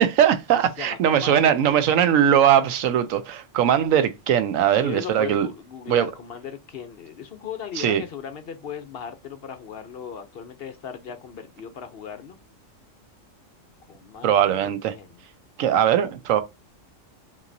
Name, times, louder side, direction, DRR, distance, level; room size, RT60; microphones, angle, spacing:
voice 1, 0.0-5.5 5.9-6.1 7.8-8.0 14.2-14.9 15.6-16.4, right 9 dB, 90° right, 1.0 m, -20 dB
voice 2, 0.8-1.8 4.7-12.4 13.9-15.2, left 7 dB, 60° left, 0.7 m, -38 dB
5.3 x 2.9 x 2.6 m
omnidirectional pair, 1.3 m